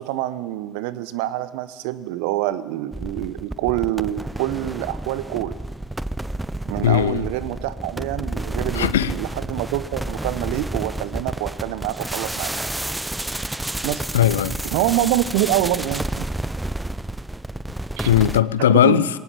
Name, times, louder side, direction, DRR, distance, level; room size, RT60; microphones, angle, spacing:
voice 1, 0.0-5.5 6.7-12.5 13.8-14.0 14.6-16.3 18.0-18.1 18.8-19.1, right 14 dB, 65° right, 0.9 m, -26 dB
sound 1, 2.9-18.4, right 1 dB, 10° right, 0.7 m, -30 dB
voice 2, 6.8-7.2 8.7-9.1 14.1-14.6 18.0-19.1, left 10 dB, 75° left, 0.6 m, -18 dB
21.0 x 18.0 x 8.7 m
figure-of-eight pair, 55°, 0 cm